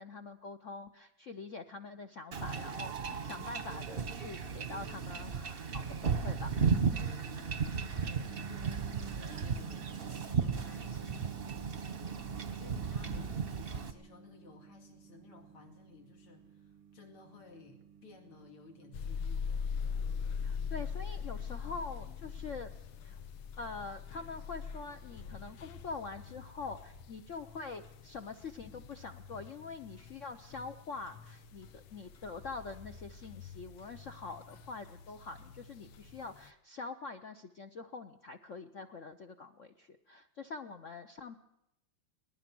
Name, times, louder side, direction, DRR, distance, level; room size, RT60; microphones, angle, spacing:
voice 1, 0.0-6.5 13.0-13.5 20.4-22.7 23.0-23.2 23.6-41.4, left 4 dB, 55° left, 6 dB, 0.8 m, -45 dB
Wind / Ocean / Boat Water vehicle, 2.3-13.9, right 6 dB, 35° right, 0.9 m, -35 dB
voice 2, 7.0-11.5 12.6-19.7, left 3 dB, 90° left, 3 dB, 3.3 m, -56 dB
sound 1, 8.2-19.0, right 8 dB, 85° right, 1.8 m, -51 dB
sound 2, 18.9-36.5, left 6 dB, 75° left, 1.8 m, -43 dB
23.0 x 19.0 x 6.1 m, 0.84 s
omnidirectional pair, 2.3 m